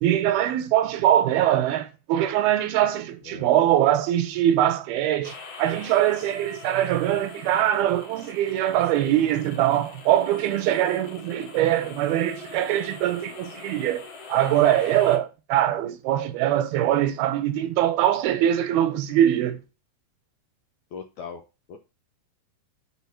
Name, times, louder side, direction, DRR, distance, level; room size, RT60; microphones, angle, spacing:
voice 1, 0.0-19.6, right 12 dB, 80° right, 2.6 m, -22 dB
voice 2, 3.2-3.7 20.9-21.4 21.7-21.8, left 6 dB, 75° left, 1.8 m, -39 dB
sound 1, 5.2-15.2, left 4 dB, 60° left, 1.7 m, -43 dB
7.5 x 3.9 x 5.7 m
omnidirectional pair, 4.6 m